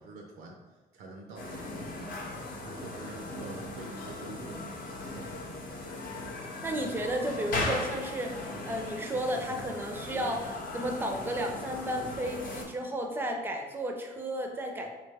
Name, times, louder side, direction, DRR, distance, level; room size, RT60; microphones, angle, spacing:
voice 1, 0.0-2.2 2.7-4.6, right 2 dB, 80° right, 1 dB, 0.5 m, -46 dB
sound 1, 1.4-12.6, left 2 dB, 60° left, 0.7 m, -38 dB
voice 2, 6.6-14.9, right 1 dB, 15° right, 2 dB, 0.4 m, -33 dB
3.3 x 2.2 x 3.3 m, 1.2 s
cardioid pair, 145°, 17 cm